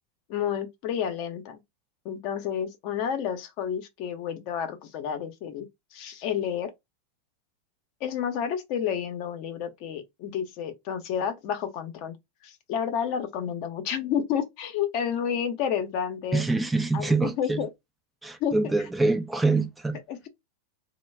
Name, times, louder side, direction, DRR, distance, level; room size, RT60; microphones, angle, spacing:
voice 1, 0.3-1.6 2.0-6.7 8.0-12.1 12.4-16.4 16.9-17.7 18.4-18.6 19.5-19.7 20.1-20.3, left 8 dB, 55° left, 0.6 m, -30 dB
voice 2, 16.3-17.7 18.2-20.0, right 3 dB, 10° right, 0.3 m, -25 dB
2.2 x 2.1 x 3.2 m
hypercardioid pair, 100°, 0 cm